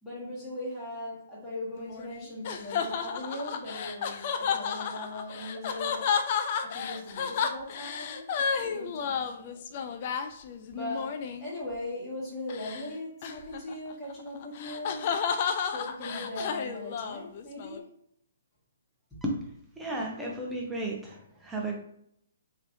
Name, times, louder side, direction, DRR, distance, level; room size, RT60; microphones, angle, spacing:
voice 1, 0.0-6.1 6.6-9.6 10.6-15.1 15.7-17.8 19.1-19.2, left 1 dB, 10° left, -10 dB, 1.4 m, -39 dB
sound 1, 1.7-11.6 12.5-12.9 13.2-17.8, left 6 dB, 45° left, 0.3 m, -32 dB
voice 2, 19.8-21.8, right 1 dB, 5° right, -2 dB, 0.7 m, -33 dB
3.1 x 2.9 x 2.7 m, 0.71 s
hypercardioid pair, 130°, 0 cm